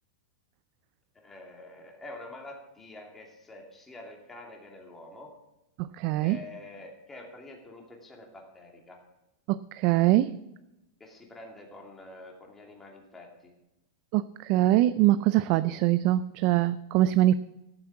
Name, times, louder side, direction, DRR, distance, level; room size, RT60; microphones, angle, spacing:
voice 1, 1.1-5.4 6.2-9.0 11.0-13.5, left 2 dB, 10° left, 0 dB, 2.7 m, -47 dB
voice 2, 5.8-6.4 9.5-10.4 14.1-17.3, right 14 dB, 45° right, 14 dB, 0.4 m, -23 dB
14.0 x 7.5 x 7.3 m, 0.94 s
supercardioid pair, 140°, 2 cm